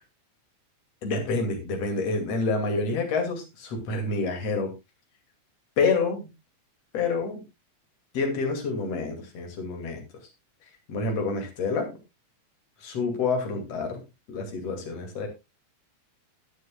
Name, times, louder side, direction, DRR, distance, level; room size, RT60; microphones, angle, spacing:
voice 1, 1.0-4.7 5.8-6.3 6.9-7.4 8.1-10.1 10.9-11.9 12.8-14.0 14.3-15.3, left 4 dB, 60° left, 4 dB, 3.6 m, -28 dB
19.5 x 6.9 x 2.4 m, 0.23 s
omnidirectional pair, 3.4 m